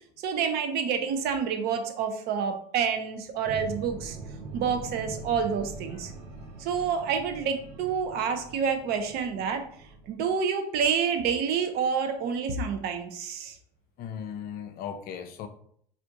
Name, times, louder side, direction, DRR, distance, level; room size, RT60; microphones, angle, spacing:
voice 1, 0.2-4.2 4.5-6.1 6.6-9.7 10.1-13.5, right 6 dB, 50° right, 0.6 m, -28 dB
sound 1, 3.4-10.2, right 3 dB, 90° right, 0.8 m, -42 dB
voice 2, 14.0-15.5, left 8 dB, 45° left, 0.5 m, -37 dB
3.4 x 2.5 x 2.5 m
hypercardioid pair, 80°, 21 cm